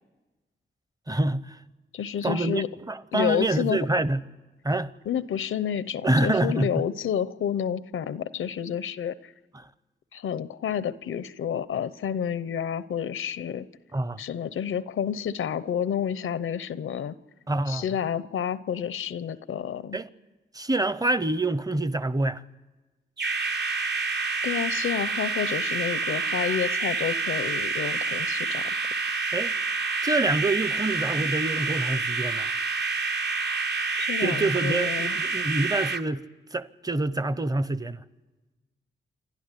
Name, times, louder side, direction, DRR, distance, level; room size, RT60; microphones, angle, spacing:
voice 1, 1.1-1.6 2.2-4.2 4.6-4.9 6.0-6.9 9.5-9.7 13.9-14.2 17.5-17.8 19.9-20.1 20.5-22.4 29.3-29.5 30.0-32.6 34.2-36.2 36.5-38.0, right 2 dB, 20° right, 0.8 m, -26 dB
voice 2, 1.9-2.7 3.1-3.8 5.1-9.3 10.1-13.7 14.2-17.2 17.7-20.0 24.4-28.7 34.0-35.2, left 8 dB, 90° left, 0.7 m, -30 dB
sound 1, 23.2-36.0, right 4 dB, 55° right, 1.2 m, -28 dB
28.0 x 12.5 x 9.9 m
cardioid pair, 70°, 20 cm